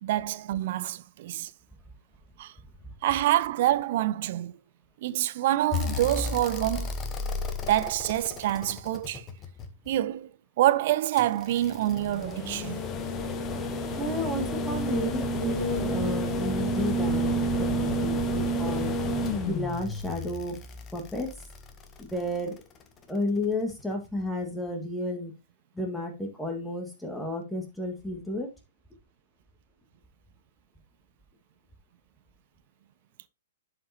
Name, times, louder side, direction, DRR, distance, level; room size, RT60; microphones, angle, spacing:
voice 1, 0.0-1.5 2.4-2.5 3.0-4.5 5.0-6.9 7.7-9.2 9.9-10.3 10.6-12.9, right 14 dB, 50° right, 0.4 m, -26 dB
sound 1, 5.7-9.9 11.2-22.4 23.9-24.0, equal, 20° left, 1.0 m, -30 dB
voice 2, 14.0-19.0 19.5-20.6 20.9-21.3 22.0-22.6 23.1-25.3 25.7-28.5, left 1 dB, 5° left, 1.8 m, -32 dB
11.0 x 5.0 x 2.9 m
figure-of-eight pair, 115°, 0 cm